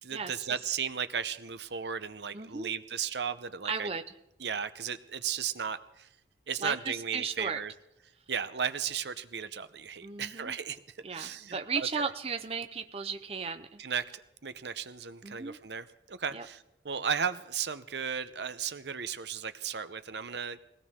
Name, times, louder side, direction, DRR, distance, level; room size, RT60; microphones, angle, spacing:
voice 1, 0.0-3.9 4.4-6.1 6.5-7.7 8.3-10.8 11.1-12.1 13.8-20.6, right 7 dB, 75° right, 12 dB, 0.8 m, -35 dB
voice 2, 2.3-2.7 3.6-4.0 6.6-7.6 10.0-10.6 11.0-13.8 15.2-15.6 16.3-16.4, right 5 dB, 35° right, 7 dB, 0.6 m, -35 dB
21.5 x 17.0 x 3.7 m, 0.87 s
head